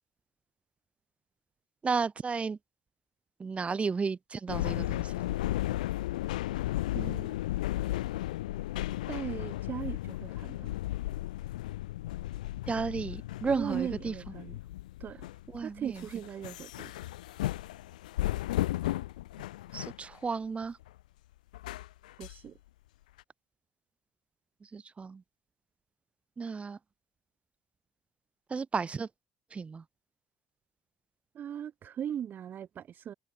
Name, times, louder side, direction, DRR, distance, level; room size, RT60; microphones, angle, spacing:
voice 1, 1.8-2.6 3.4-5.1 12.7-14.1 15.5-16.1 19.7-20.8 24.6-25.2 26.4-26.8 28.5-29.1 29.5-29.8, right 5 dB, 30° right, 3.0 m, -33 dB
sound 1, 4.5-20.1 20.6-20.9 21.5-22.4 23.2-23.3, left 15 dB, 90° left, 1.4 m, -35 dB
voice 2, 6.9-7.4 9.1-10.8 13.5-14.6 15.0-15.3 15.6-17.0 22.2-22.6 31.3-33.1, right 9 dB, 50° right, 3.0 m, -38 dB
hypercardioid pair, 65°, 4 cm